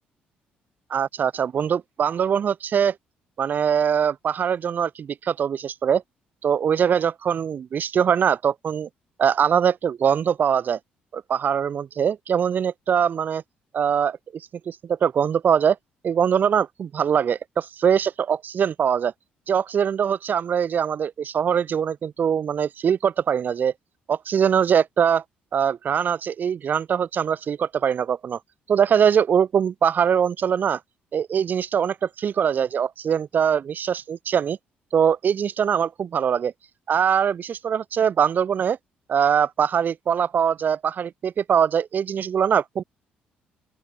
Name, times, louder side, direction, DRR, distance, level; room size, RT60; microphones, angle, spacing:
voice 1, 0.9-2.9 3.4-6.0 6.4-8.9 9.2-10.8 11.1-13.4 13.7-15.8 16.0-19.1 19.5-23.7 24.1-25.2 25.5-28.4 28.7-30.8 31.1-34.6 34.9-36.5 36.9-38.8 39.1-42.8, right 8 dB, 55° right, 3.0 m, -22 dB
open air
supercardioid pair, 70°, 4 cm